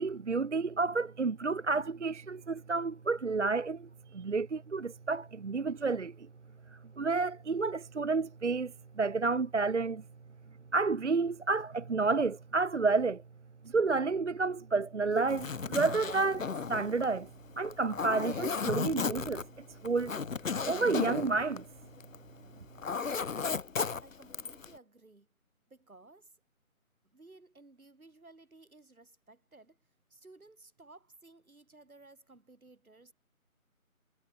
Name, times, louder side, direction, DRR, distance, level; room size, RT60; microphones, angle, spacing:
voice 1, 0.0-6.3 7.0-10.0 10.7-13.2 13.7-17.3 17.6-19.4 19.8-20.1 20.7-21.6, right 4 dB, 55° right, 0.6 m, -30 dB
Zipper (clothing), 15.2-22.3 22.6-24.7, left 5 dB, 65° left, 0.9 m, -35 dB
voice 2, 22.9-23.4 24.0-25.3 25.7-26.3 27.1-29.8 30.1-33.1, right 2 dB, 75° right, 7.2 m, -57 dB
figure-of-eight pair, 175°, 43 cm